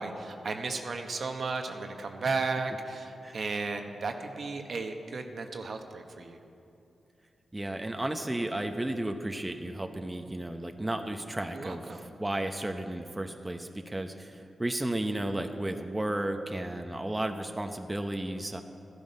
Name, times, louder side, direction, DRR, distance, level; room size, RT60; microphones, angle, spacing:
voice 1, 0.0-6.4 11.5-12.1, right 3 dB, 65° right, 5 dB, 1.1 m, -34 dB
voice 2, 7.5-11.8 12.2-18.6, right 1 dB, 20° right, 5 dB, 0.8 m, -33 dB
13.5 x 11.0 x 5.4 m, 2.7 s
cardioid pair, 60°, 0 cm